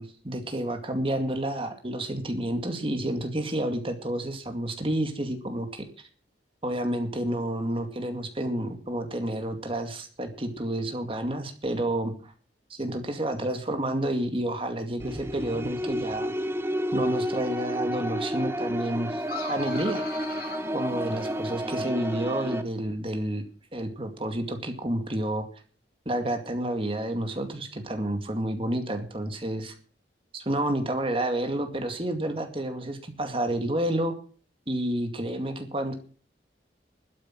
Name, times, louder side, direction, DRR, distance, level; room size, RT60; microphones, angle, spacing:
voice 1, 0.0-6.1 6.6-12.3 12.7-16.3 16.9-19.2 19.5-20.0 20.7-23.4 23.7-25.5 26.1-29.7 30.3-34.2 34.7-36.0, right 1 dB, 30° right, 6 dB, 2.3 m, -30 dB
sound 1, 15.0-22.6, equal, 15° right, 0.9 m, -31 dB
sound 2, 19.2-21.7, left 3 dB, 55° left, 6.0 m, -39 dB
12.5 x 8.4 x 7.7 m, 0.42 s
head